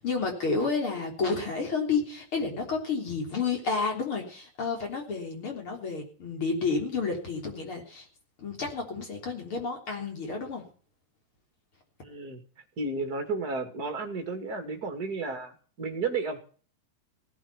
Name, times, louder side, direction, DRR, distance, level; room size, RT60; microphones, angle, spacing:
voice 1, 0.0-8.1 8.4-10.6, left 4 dB, 35° left, 2 dB, 3.8 m, -30 dB
voice 2, 12.0-12.4 12.8-16.4, right 4 dB, 30° right, 5 dB, 2.2 m, -32 dB
18.0 x 8.7 x 7.0 m, 0.42 s
omnidirectional pair, 4.8 m